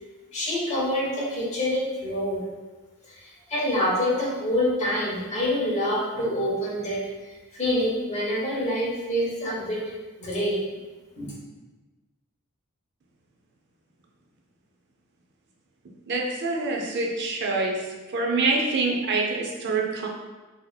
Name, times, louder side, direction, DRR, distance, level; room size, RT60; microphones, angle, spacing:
voice 1, 0.3-2.4 3.1-7.0 7.5-9.8 10.2-10.6 11.2-11.3, left 1 dB, 30° left, -7 dB, 1.1 m, -26 dB
voice 2, 16.1-17.8 18.1-20.1, right 3 dB, 50° right, 0 dB, 0.5 m, -25 dB
4.0 x 2.8 x 2.3 m, 1.2 s
head